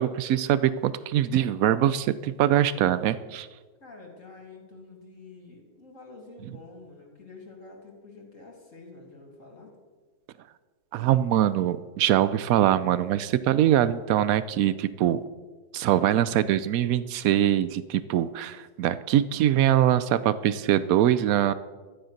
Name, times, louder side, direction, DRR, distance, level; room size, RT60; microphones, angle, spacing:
voice 1, 0.0-3.5 10.9-15.2 15.7-21.5, right 11 dB, 85° right, 15 dB, 0.7 m, -23 dB
voice 2, 3.8-9.8, left 3 dB, 40° left, 0 dB, 3.1 m, -48 dB
13.5 x 10.5 x 6.5 m, 1.3 s
omnidirectional pair, 2.1 m